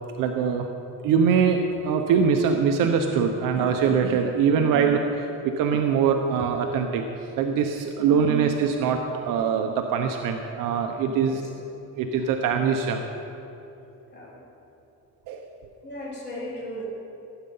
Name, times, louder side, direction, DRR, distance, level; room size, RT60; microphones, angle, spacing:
voice 1, 0.2-0.7 1.0-7.0 7.4-9.0 9.2-11.4 12.0-13.0 15.3-15.5, right 6 dB, 70° right, 4 dB, 0.9 m, -23 dB
voice 2, 4.5-4.9 8.0-8.4 11.0-11.4 14.1-14.3 15.8-16.8, equal, 30° left, -8 dB, 3.7 m, -37 dB
17.5 x 8.9 x 5.5 m, 2.9 s
cardioid pair, 155°, 34 cm